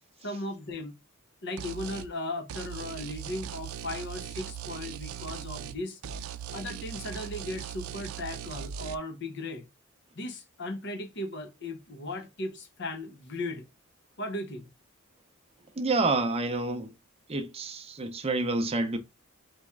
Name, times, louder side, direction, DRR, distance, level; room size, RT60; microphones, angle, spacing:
voice 1, 0.2-0.9 1.4-6.0 6.5-9.7 10.1-13.7 14.2-14.7, left 1 dB, 55° left, 1.0 m, -37 dB
sound 1, 1.6-2.1 2.5-5.8 6.0-9.0, right 9 dB, 85° right, 0.4 m, -39 dB
voice 2, 15.8-16.9 17.3-19.0, right 2 dB, 30° right, 0.6 m, -28 dB
4.3 x 3.1 x 3.5 m
head